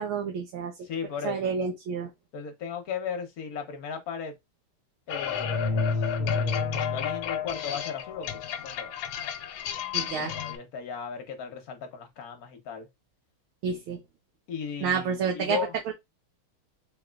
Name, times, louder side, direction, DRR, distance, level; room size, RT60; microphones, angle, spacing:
voice 1, 0.0-0.7 1.2-2.1 9.9-10.3 13.6-14.0 14.8-15.6 15.9-16.0, right 6 dB, 80° right, 1.6 m, -29 dB
voice 2, 0.8-1.5 2.3-4.3 5.1-5.9 6.2-8.9 10.0-12.9 14.5-15.8, left 6 dB, 55° left, 1.2 m, -36 dB
sound 1, 5.1-10.6, left 9 dB, 75° left, 1.3 m, -33 dB
sound 2, 5.3-7.3 9.9-10.1, left 3 dB, 30° left, 1.4 m, -29 dB
3.8 x 3.5 x 2.4 m
omnidirectional pair, 2.3 m